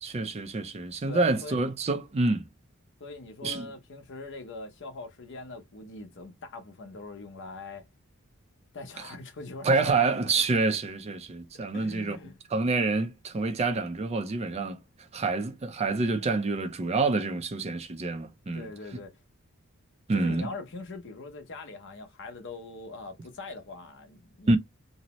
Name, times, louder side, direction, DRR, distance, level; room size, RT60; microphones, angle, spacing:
voice 1, 0.0-2.5 3.4-3.7 9.6-12.2 12.5-14.8 15.1-18.7 20.1-20.5 24.5-24.6, right 3 dB, 30° right, 0.4 m, -27 dB
voice 2, 1.1-1.6 3.0-7.9 8.7-10.3 11.5-12.4 18.5-19.2 20.1-24.6, left 2 dB, 55° left, 0.7 m, -42 dB
2.7 x 2.0 x 2.8 m
head